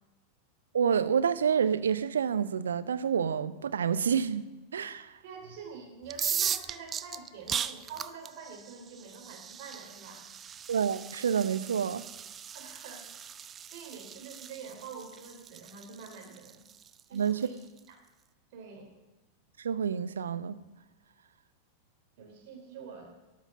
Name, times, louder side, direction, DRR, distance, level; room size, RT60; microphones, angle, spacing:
voice 1, 0.7-4.5 4.7-5.1 10.7-12.0 17.1-17.4 19.6-20.6, right 7 dB, 70° right, 0.6 m, -28 dB
voice 2, 5.2-10.2 12.5-13.3 13.6-16.7 17.1-17.6 17.9-18.0 18.5-18.9 22.2-23.1, right 5 dB, 50° right, 3.2 m, -46 dB
sound 1, 6.0-17.8, right 8 dB, 25° right, 0.4 m, -38 dB
13.0 x 6.2 x 7.5 m
figure-of-eight pair, 90°, 0 cm